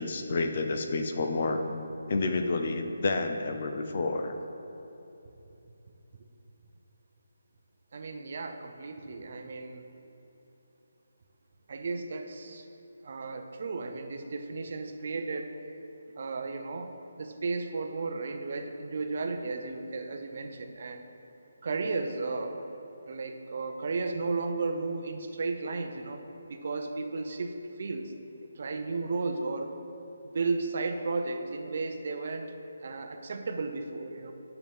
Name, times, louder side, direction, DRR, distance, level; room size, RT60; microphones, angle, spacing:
voice 1, 0.0-1.6 2.1-4.3, left 3 dB, 35° left, 6 dB, 0.6 m, -29 dB
voice 2, 7.9-9.8 11.7-12.6 13.0-15.5 16.2-21.0 21.6-22.6 23.0-26.2 26.5-28.1 28.6-29.7 30.2-32.5 32.8-34.3, right 3 dB, 40° right, 5 dB, 0.6 m, -34 dB
10.0 x 6.8 x 3.6 m, 2.9 s
hypercardioid pair, 175°, 0 cm